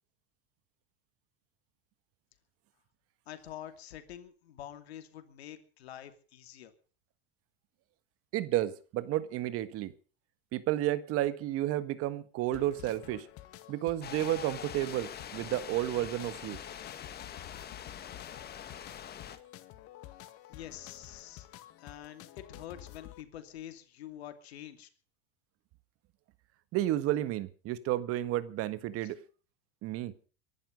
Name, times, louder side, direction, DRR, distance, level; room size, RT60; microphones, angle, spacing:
voice 1, 3.3-6.7 20.5-21.5 21.8-24.9 29.0-29.1, left 11 dB, 85° left, 2.7 m, -47 dB
voice 2, 8.3-9.9 10.5-13.3 13.7-16.6 26.7-29.2 29.8-30.1, right 14 dB, 50° right, 1.5 m, -31 dB
sound 1, 12.5-23.2, left 14 dB, 50° left, 1.8 m, -51 dB
sound 2, 14.0-19.4, left 9 dB, 30° left, 1.9 m, -44 dB
23.0 x 11.5 x 5.2 m
supercardioid pair, 110°, 31 cm